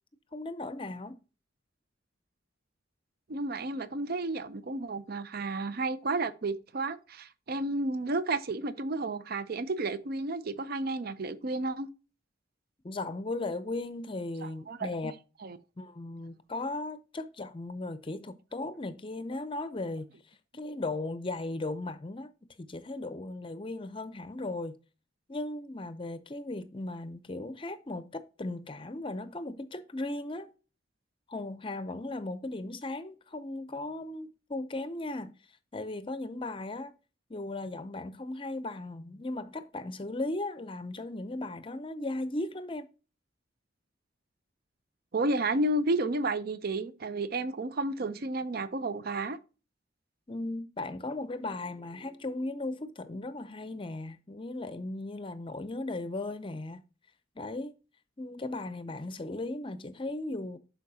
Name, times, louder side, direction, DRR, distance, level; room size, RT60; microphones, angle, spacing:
voice 1, 0.3-1.2 12.8-15.1 15.8-22.3 22.6-24.7 25.3-30.5 31.3-35.3 35.7-36.9 37.3-42.9 50.3-56.8 57.4-57.7 58.2-60.6, left 2 dB, 30° left, 0.6 m, -37 dB
voice 2, 3.3-11.9 14.4-15.1 15.4-15.6 45.1-49.4, right 2 dB, 55° right, 0.6 m, -32 dB
11.5 x 4.5 x 2.7 m
head